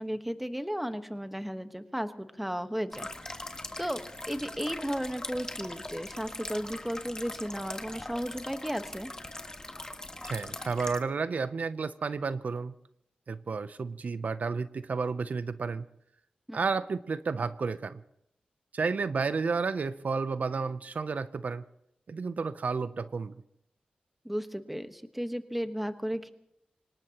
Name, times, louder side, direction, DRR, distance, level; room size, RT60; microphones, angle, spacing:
voice 1, 0.0-3.5 3.8-4.0 4.3-9.1 16.5-16.6 24.2-26.3, equal, 5° right, 9 dB, 1.2 m, -34 dB
sound 1, 2.9-11.0, left 2 dB, 25° left, 1.6 m, -41 dB
voice 2, 10.2-12.7 13.3-15.8 16.5-18.0 18.7-21.6 22.1-23.3, right 4 dB, 65° right, 14 dB, 0.5 m, -31 dB
25.5 x 18.5 x 2.9 m, 0.79 s
cardioid pair, 60°, 3 cm